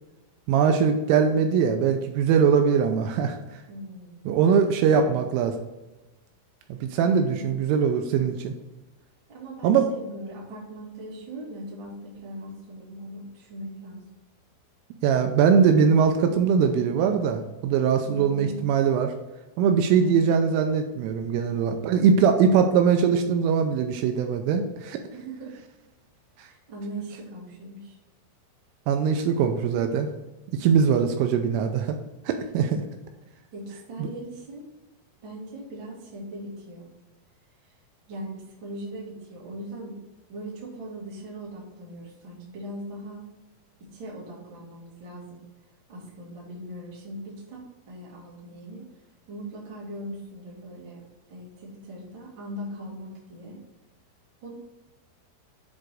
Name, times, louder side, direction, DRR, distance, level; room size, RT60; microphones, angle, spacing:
voice 1, 0.5-3.4 4.3-5.6 6.7-8.5 9.6-9.9 15.0-19.1 19.6-25.0 28.9-30.1 30.5-32.0 32.3-32.8 34.0-34.1, right 6 dB, 80° right, 5 dB, 3.1 m, -21 dB
voice 2, 3.7-4.7 5.0-5.3 7.1-7.4 9.3-14.0 18.1-18.7 20.0-20.3 25.1-25.6 26.4-28.0 32.5-32.6 33.5-34.7 35.2-36.9 38.1-40.0 40.3-43.2 43.8-45.4 45.9-48.9 49.3-51.0 51.3-53.6 54.4-54.5, right 1 dB, 40° right, -5 dB, 1.8 m, -40 dB
9.8 x 3.9 x 4.7 m, 1.1 s
omnidirectional pair, 5.9 m